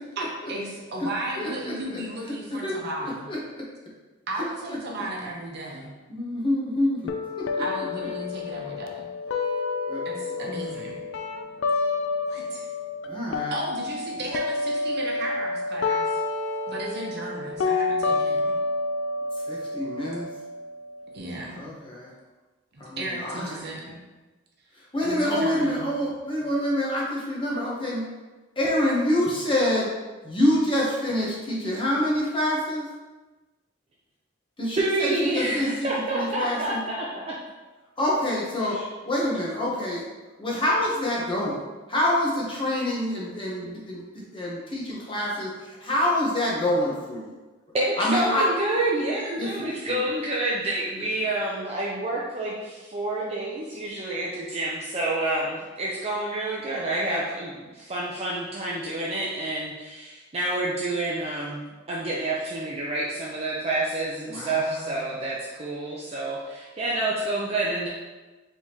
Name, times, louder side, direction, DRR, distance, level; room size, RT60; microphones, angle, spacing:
voice 1, 0.2-3.3 4.3-5.9 7.6-9.1 10.0-11.0 12.3-12.7 13.5-16.2 16.7-18.6 21.1-21.6 22.7-24.0 25.0-25.9 26.4-26.5, right 1 dB, 55° right, -2 dB, 0.9 m, -35 dB
voice 2, 1.4-2.0 2.5-3.7 4.7-5.0 6.1-7.5 9.9-10.5 13.0-13.6 19.5-20.3 21.6-22.1 22.8-23.7 24.9-28.0 28.6-29.9 30.2-32.8 34.6-36.8 38.0-38.8 39.1-40.0 40.4-41.6 41.9-47.3 48.0-48.4 49.4-50.0 64.3-65.1, left 1 dB, 25° left, -4 dB, 0.9 m, -27 dB
sound 1, 7.1-13.1 13.3-21.1, left 3 dB, 65° left, 0.4 m, -29 dB
voice 3, 34.8-37.4 38.6-38.9 47.7-67.9, right 2 dB, 30° right, -5 dB, 0.5 m, -28 dB
4.5 x 3.5 x 2.9 m, 1.2 s
head